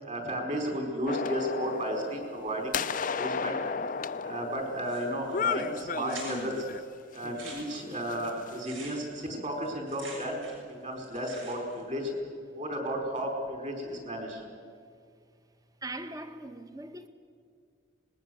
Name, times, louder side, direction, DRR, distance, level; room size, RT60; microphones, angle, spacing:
voice 1, 0.0-3.6 4.2-6.6 7.1-10.4 10.8-12.1 12.5-14.4, equal, 40° right, 4.9 m, -33 dB
sound 1, 1.1-6.8 7.2-8.6, left 5 dB, 45° left, 0.5 m, -34 dB
sound 2, 4.8-5.3 5.6-5.7 6.1-6.6 7.2-10.7 11.0-11.8, right 3 dB, 80° right, 6.9 m, -46 dB
voice 2, 15.8-17.1, right 2 dB, 20° right, 1.1 m, -40 dB
26.0 x 20.0 x 8.0 m
head